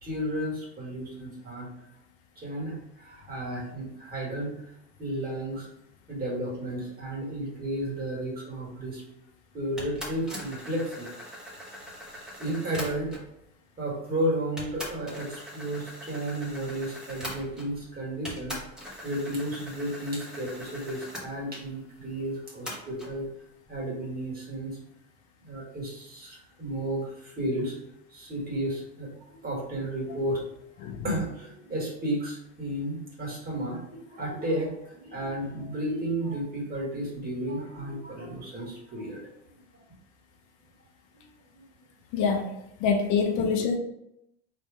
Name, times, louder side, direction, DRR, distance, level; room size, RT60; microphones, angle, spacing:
voice 1, 0.0-1.7 2.4-4.6 5.0-5.7 6.1-9.0 9.5-11.1 12.1-13.2 13.8-18.6 19.0-23.3 23.7-24.8 25.4-27.8 28.1-30.4 31.0-39.2 39.7-39.8 43.4-43.5, right 1 dB, 25° right, -3 dB, 1.8 m, -33 dB
sound 1, 9.8-13.3 14.1-14.2 14.6-17.9 18.2-21.3 22.7-23.1, equal, ahead, 1.2 m, -41 dB
voice 2, 42.1-42.5 42.8-43.8, left 5 dB, 55° left, 3 dB, 0.8 m, -25 dB
4.3 x 3.3 x 3.4 m, 0.80 s
supercardioid pair, 130°, 35 cm